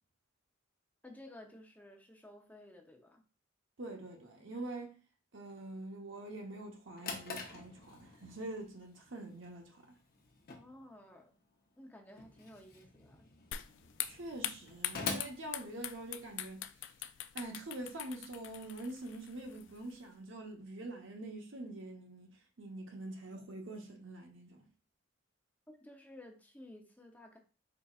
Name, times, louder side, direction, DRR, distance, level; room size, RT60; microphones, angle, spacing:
voice 1, 1.0-3.2 10.5-11.3 11.8-13.3 25.7-27.4, left 1 dB, 10° left, 0.6 m, -54 dB
voice 2, 3.8-4.9 5.3-9.9 14.0-16.9 17.3-24.7, right 2 dB, 70° right, 0.9 m, -45 dB
Drawer open or close, 6.6-16.4, left 4 dB, 50° left, 0.8 m, -46 dB
sound 1, 13.5-20.1, left 11 dB, 65° left, 0.3 m, -44 dB
4.4 x 4.0 x 2.4 m
head